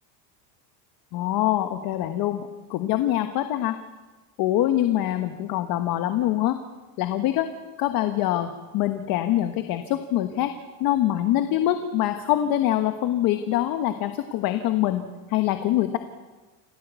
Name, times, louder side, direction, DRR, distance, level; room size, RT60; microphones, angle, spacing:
voice 1, 1.1-3.8 4.4-6.6 7.0-7.5 7.8-10.5 10.8-16.0, left 13 dB, 45° left, 8 dB, 1.4 m, -24 dB
28.5 x 15.0 x 8.2 m, 1.2 s
cardioid pair, 170°, 50 cm